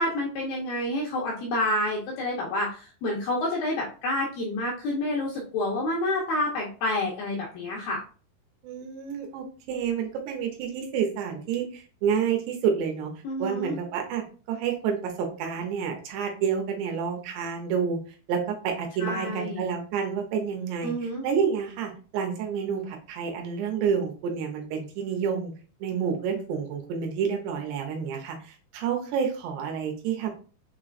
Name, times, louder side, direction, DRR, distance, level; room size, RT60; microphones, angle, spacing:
voice 1, 0.0-8.0 13.2-13.8 19.0-19.6 20.8-21.3, left 1 dB, 75° left, -2 dB, 2.2 m, -28 dB
voice 2, 8.6-13.1 13.4-18.0 18.3-25.5 25.8-30.3, right 7 dB, 75° right, 3 dB, 2.7 m, -29 dB
6.8 x 3.0 x 2.4 m, 0.38 s
omnidirectional pair, 5.2 m